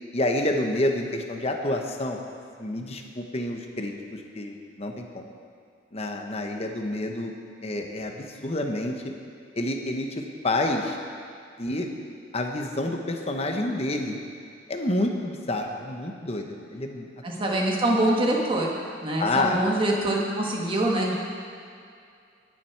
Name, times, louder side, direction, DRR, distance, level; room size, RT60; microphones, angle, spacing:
voice 1, 0.1-2.2 2.6-5.2 5.9-7.3 7.6-9.0 9.5-11.0 11.6-11.9 12.3-14.2 14.7-17.1 19.2-19.6, left 1 dB, 35° left, 3 dB, 1.0 m, -28 dB
voice 2, 17.2-18.7 19.0-21.1, right 1 dB, 25° right, -2 dB, 1.6 m, -24 dB
20.5 x 7.4 x 4.6 m, 2.4 s
head